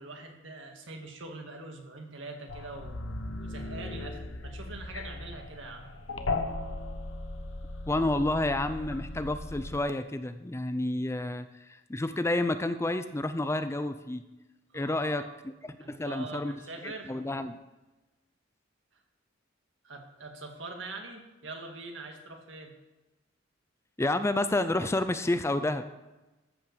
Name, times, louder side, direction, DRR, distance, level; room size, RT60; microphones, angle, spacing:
voice 1, 0.0-5.9 14.7-15.3 15.8-17.1 18.9-19.0 19.8-22.7, right 2 dB, 70° right, 2 dB, 2.0 m, -43 dB
sound 1, 2.5-9.8, left 2 dB, 80° left, 1.0 m, -37 dB
voice 2, 7.9-14.2 14.7-15.2 15.9-16.5 16.8-17.6 24.0-25.8, left 2 dB, 15° left, 10 dB, 0.5 m, -29 dB
14.0 x 5.6 x 6.7 m, 1.1 s
head